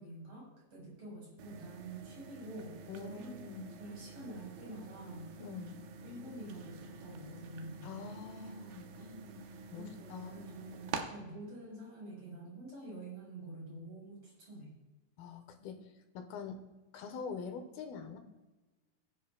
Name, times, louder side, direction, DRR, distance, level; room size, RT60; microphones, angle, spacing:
voice 1, 0.0-3.5 3.8-5.3 6.0-7.9 9.7-14.7, right 1 dB, 40° right, -4 dB, 5.5 m, -47 dB
sound 1, 1.4-11.0, right 5 dB, 80° right, 2.8 m, -48 dB
voice 2, 2.9-3.7 5.4-5.8 7.8-9.4 9.7-10.6 15.2-16.6 16.9-18.2, left 5 dB, 80° left, 6 dB, 2.9 m, -45 dB
20.0 x 10.5 x 2.3 m, 1.1 s
omnidirectional pair, 4.3 m